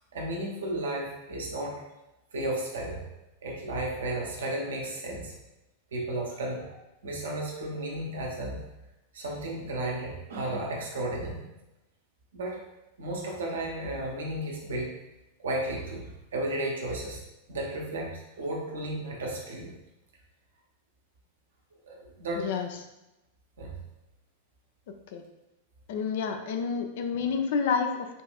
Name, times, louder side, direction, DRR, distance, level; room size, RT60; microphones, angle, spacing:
voice 1, 0.1-1.7 2.3-3.0 3.4-5.3 5.9-6.6 7.0-8.6 9.1-11.4 12.3-12.6 13.0-14.9 15.4-17.2 17.5-19.7 21.8-22.5 23.6-23.8, right 1 dB, 65° right, -1 dB, 0.8 m, -33 dB
voice 2, 22.4-22.7 25.1-25.2 25.9-28.2, left 6 dB, 55° left, 5 dB, 0.4 m, -29 dB
5.2 x 2.4 x 2.4 m, 0.95 s
figure-of-eight pair, 90°, 0 cm